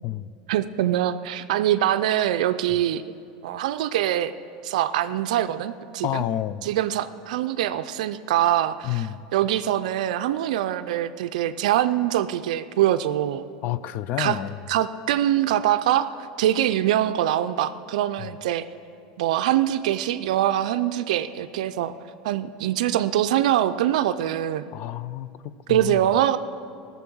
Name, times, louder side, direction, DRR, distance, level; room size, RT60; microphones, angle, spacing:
voice 1, 0.5-3.0 3.4-4.3 4.6-6.2 6.6-9.1 9.3-13.4 14.2-14.4 14.7-16.1 16.4-18.6 19.2-21.9 22.2-24.6 25.7-26.4, right 12 dB, 80° right, 11 dB, 0.4 m, -23 dB
voice 2, 6.0-6.7 8.8-9.2 13.6-14.6 18.2-18.3 24.7-26.0, left 12 dB, 50° left, 16 dB, 0.4 m, -29 dB
15.0 x 7.0 x 6.1 m, 2.6 s
supercardioid pair, 120°, 4 cm